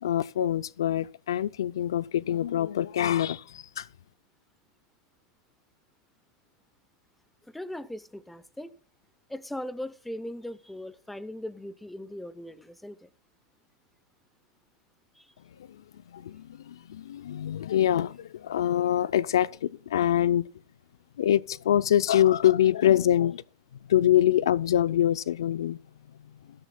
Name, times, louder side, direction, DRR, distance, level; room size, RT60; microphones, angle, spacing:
voice 1, 0.0-3.9 15.7-15.8 16.1-20.5 21.2-23.4 23.9-25.8, left 11 dB, 85° left, 0.4 m, -25 dB
voice 2, 7.5-8.7 9.3-13.1 15.1-15.3, left 1 dB, 5° left, 0.7 m, -39 dB
14.0 x 12.5 x 2.3 m
hypercardioid pair, 125°, 2 cm